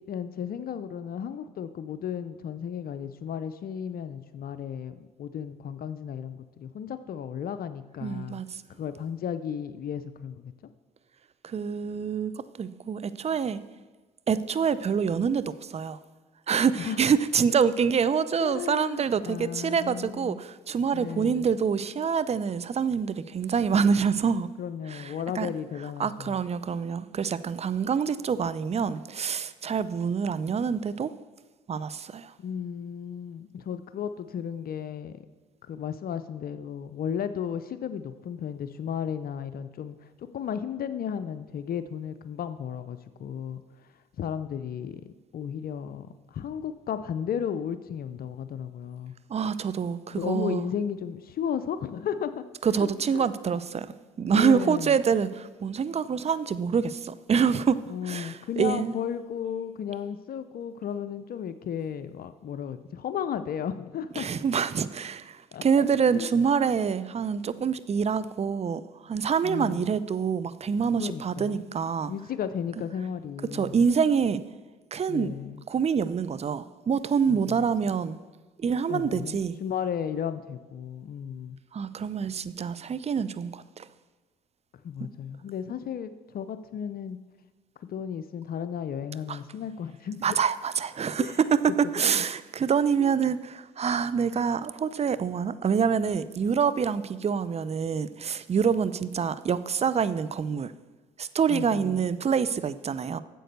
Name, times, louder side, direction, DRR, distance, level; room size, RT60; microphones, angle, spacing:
voice 1, 0.0-8.4 8.8-10.5 16.8-17.0 18.4-20.4 20.9-21.5 24.6-26.4 32.4-35.3 35.7-49.1 50.1-52.4 52.8-53.3 54.3-55.0 57.9-64.3 65.5-66.3 69.4-70.0 71.0-71.6 72.1-73.8 75.1-75.6 77.3-77.6 78.9-81.6 84.8-87.2 87.8-90.4 91.2-91.5 93.0-93.3 101.5-102.1, left 8 dB, 55° left, 0.6 m, -34 dB
voice 2, 8.0-8.6 11.4-13.6 14.3-16.0 16.5-24.5 24.9-25.1 25.4-25.5 26.0-31.1 31.7-32.3 49.3-50.7 52.6-53.9 54.2-58.9 64.2-72.1 73.5-74.4 74.9-75.3 75.7-78.2 78.6-79.6 81.7-83.9 89.3-89.4 90.2-100.7 101.2-103.2, right 6 dB, 35° right, 0.6 m, -26 dB
9.3 x 7.5 x 6.8 m
supercardioid pair, 65°, 18 cm